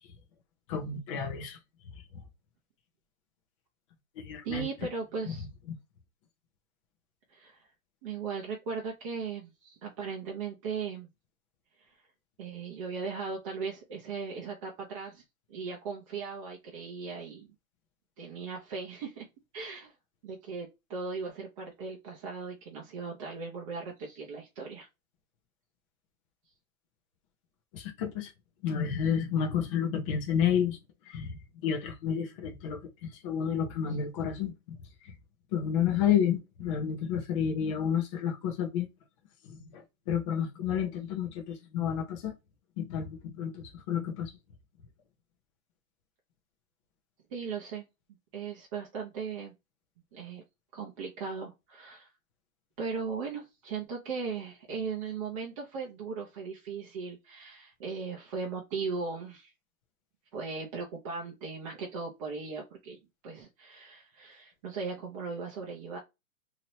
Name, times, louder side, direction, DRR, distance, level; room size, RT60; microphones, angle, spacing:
voice 1, 0.7-1.6 2.1-2.2 4.2-4.7 5.3-5.4 27.7-28.3 28.6-30.8 31.1-31.4 31.6-34.8 35.0-35.1 35.5-38.9 39.4-42.3 42.8-44.3, left 8 dB, 25° left, 0.6 m, -30 dB
voice 2, 4.4-5.5 7.3-7.6 8.0-11.1 12.4-15.2 15.5-17.5 18.2-19.3 19.5-19.9 20.2-24.9 47.3-47.8 48.3-49.5 50.1-50.4 50.7-52.1 52.8-59.5 60.3-63.0 63.2-66.0, right 5 dB, 25° right, 0.6 m, -38 dB
2.8 x 2.8 x 3.0 m
hypercardioid pair, 150°, 42 cm